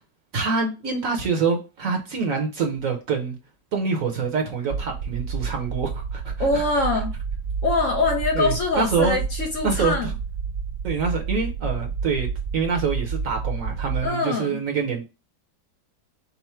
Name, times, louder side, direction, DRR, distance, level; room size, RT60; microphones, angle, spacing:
voice 1, 0.3-3.4 3.7-6.6 8.3-9.1 9.6-10.1 10.8-12.3 12.5-15.0, right 5 dB, 55° right, 1.2 m, -26 dB
sound 1, 4.7-14.1, right 5 dB, 85° right, 0.6 m, -30 dB
voice 2, 6.4-7.1 7.6-10.1 14.0-14.6, left 3 dB, 55° left, 1.0 m, -23 dB
5.6 x 2.1 x 4.3 m
omnidirectional pair, 1.9 m